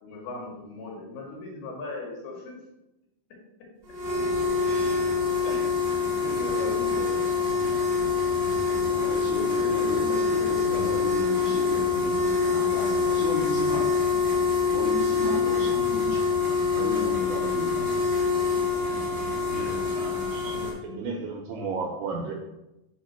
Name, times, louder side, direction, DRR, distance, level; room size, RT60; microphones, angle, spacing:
voice 1, 0.0-2.5 4.7-5.2 5.4-5.7 6.2-7.3, left 3 dB, 80° left, -1 dB, 3.4 m, -38 dB
sound 1, 3.9-20.7, left 4 dB, 55° right, 0.7 m, -25 dB
voice 2, 8.7-14.0 14.7-16.2 16.7-17.8, left 2 dB, 60° left, -5 dB, 2.2 m, -33 dB
voice 3, 20.3-22.3, right 4 dB, 85° right, 1 dB, 2.0 m, -33 dB
6.5 x 2.8 x 5.6 m, 0.95 s
omnidirectional pair, 4.5 m